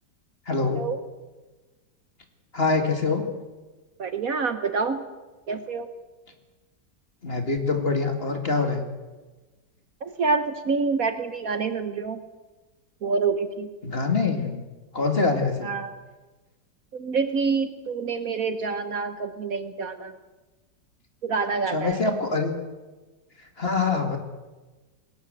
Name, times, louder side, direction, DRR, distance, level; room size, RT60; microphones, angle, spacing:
voice 1, 0.5-0.9 2.5-3.2 7.2-8.8 13.8-14.6 14.9-15.7 21.7-22.5 23.6-24.2, left 4 dB, 35° left, 5 dB, 2.5 m, -24 dB
voice 2, 4.0-5.0 5.5-5.9 10.0-12.2 13.0-13.7 15.6-16.0 16.9-20.2 21.2-22.0, right 4 dB, 55° right, 10 dB, 1.4 m, -27 dB
21.0 x 19.0 x 8.0 m, 1.2 s
omnidirectional pair, 1.9 m